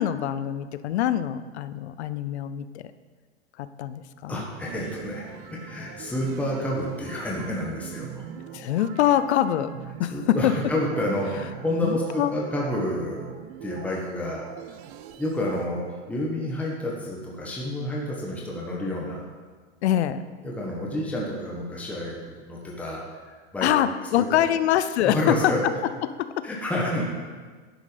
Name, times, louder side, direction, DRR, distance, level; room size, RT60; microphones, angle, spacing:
voice 1, 0.0-2.8 3.6-4.4 8.5-9.7 10.0-10.5 11.8-12.3 19.8-20.2 23.6-25.5 26.2-26.5, left 11 dB, 70° left, 13 dB, 0.6 m, -24 dB
voice 2, 4.3-8.2 10.1-13.3 13.6-14.4 15.2-19.2 20.4-23.0 23.5-23.7 24.3-24.5 25.0-25.6 26.4-27.0, left 1 dB, 5° left, -3 dB, 1.2 m, -29 dB
sound 1, 4.6-15.7, right 9 dB, 35° right, 0.5 m, -42 dB
10.5 x 5.4 x 5.0 m, 1.5 s
supercardioid pair, 145°, 35 cm